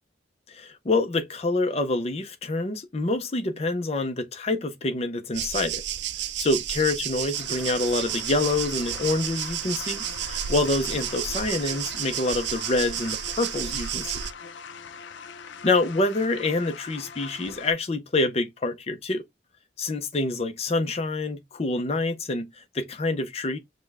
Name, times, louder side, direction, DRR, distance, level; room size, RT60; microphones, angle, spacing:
voice 1, 0.5-5.8 6.4-14.2 15.6-19.2 19.8-23.6, left 2 dB, 35° left, 0.5 m, -26 dB
sound 1, 5.3-14.3, right 11 dB, 70° right, 0.4 m, -32 dB
sound 2, 7.3-17.7, left 6 dB, 85° left, 0.4 m, -42 dB
5.2 x 2.2 x 3.4 m
head